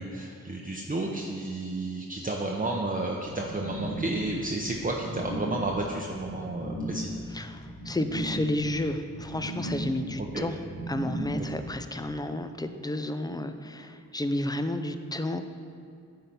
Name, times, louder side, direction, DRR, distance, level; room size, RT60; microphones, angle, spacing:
voice 1, 0.0-7.1 10.3-10.4, right 2 dB, 25° right, -1 dB, 0.7 m, -31 dB
sound 1, 3.2-11.8, right 1 dB, 50° left, 0.9 m, -37 dB
voice 2, 7.3-10.6 10.9-15.4, left 1 dB, 10° left, 8 dB, 0.5 m, -31 dB
9.6 x 3.9 x 5.6 m, 2.6 s
cardioid pair, 50°, 33 cm